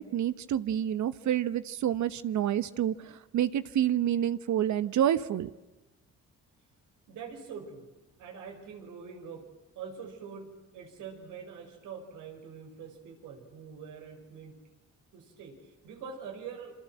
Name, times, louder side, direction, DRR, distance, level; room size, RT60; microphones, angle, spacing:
voice 1, 0.0-5.5, right 10 dB, 70° right, 14 dB, 1.1 m, -28 dB
voice 2, 7.1-7.9 8.2-9.5 9.7-14.6 15.1-16.7, right 6 dB, 90° right, 4 dB, 5.9 m, -44 dB
27.5 x 25.0 x 7.7 m, 1.0 s
cardioid pair, 90°, 30 cm